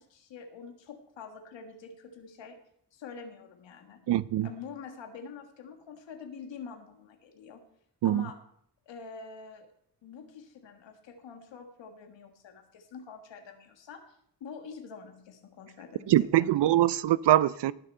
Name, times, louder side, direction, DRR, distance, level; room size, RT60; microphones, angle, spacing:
voice 1, 0.0-2.6 2.9-4.1 4.4-7.6 8.0-8.4 8.9-9.7 10.0-16.6, left 5 dB, 85° left, 1.7 m, -46 dB
voice 2, 4.1-4.5 8.0-8.3 16.1-17.7, right 13 dB, 70° right, 0.6 m, -23 dB
18.5 x 6.6 x 4.4 m
cardioid pair, 60°, 43 cm